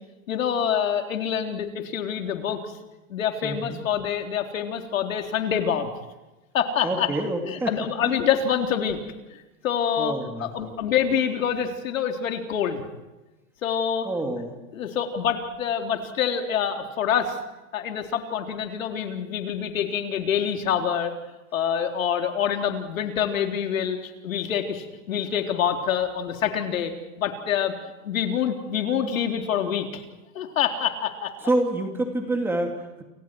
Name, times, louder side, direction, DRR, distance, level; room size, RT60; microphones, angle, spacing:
voice 1, 0.3-2.6 3.1-5.9 6.5-7.1 7.4-9.0 9.6-12.8 13.6-14.1 14.7-17.4 17.7-21.1 21.5-26.9 27.2-27.7 28.0-30.0 30.3-31.3, left 8 dB, 90° left, 4 dB, 3.8 m, -26 dB
voice 2, 3.4-3.8 6.8-7.8 8.0-8.1 10.0-10.7 14.0-14.5 31.4-33.0, right 1 dB, 5° right, 4 dB, 2.5 m, -27 dB
29.0 x 25.5 x 4.7 m, 1.1 s
supercardioid pair, 170°, 39 cm